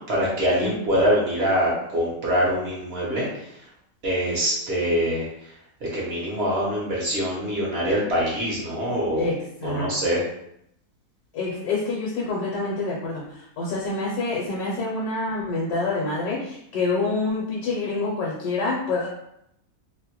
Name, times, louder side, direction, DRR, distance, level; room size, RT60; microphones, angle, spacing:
voice 1, 0.0-3.3 4.0-5.3 5.9-9.3 9.6-10.2, equal, 50° right, -5 dB, 0.8 m, -24 dB
voice 2, 0.6-1.0 9.1-9.9 11.3-19.1, left 3 dB, 70° left, -4 dB, 1.1 m, -27 dB
2.7 x 2.1 x 2.9 m, 0.77 s
omnidirectional pair, 1.7 m